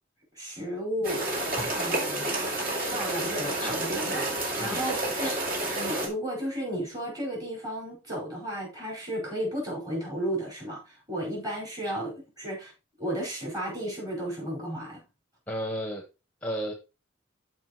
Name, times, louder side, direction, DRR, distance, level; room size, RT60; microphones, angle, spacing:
voice 1, 0.3-1.3 1.7-2.4 2.9-5.5 5.7-12.7 13.0-15.0, equal, 20° right, -3 dB, 5.1 m, -33 dB
sound 1, 1.0-6.1, right 1 dB, 45° right, 2.4 m, -30 dB
voice 2, 15.5-16.0 16.4-16.7, equal, 10° left, 2 dB, 1.0 m, -34 dB
14.0 x 4.7 x 3.0 m, 0.29 s
head